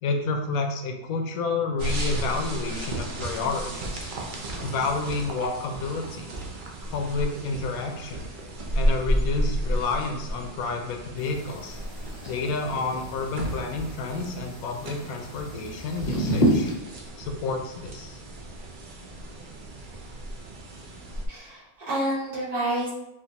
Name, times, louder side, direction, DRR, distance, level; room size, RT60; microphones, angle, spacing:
voice 1, 0.0-4.1 4.6-6.3 6.9-8.2 8.7-11.8 12.2-16.7 17.2-18.2, left 3 dB, 75° left, 4 dB, 1.0 m, -30 dB
sound 1, 1.8-21.3, right 1 dB, 60° right, 0.5 m, -33 dB
sound 2, 11.2-16.7, equal, 40° left, 0.6 m, -30 dB
voice 2, 21.3-22.9, right 1 dB, 75° right, -5 dB, 1.8 m, -29 dB
5.0 x 2.5 x 2.8 m, 0.88 s
omnidirectional pair, 1.6 m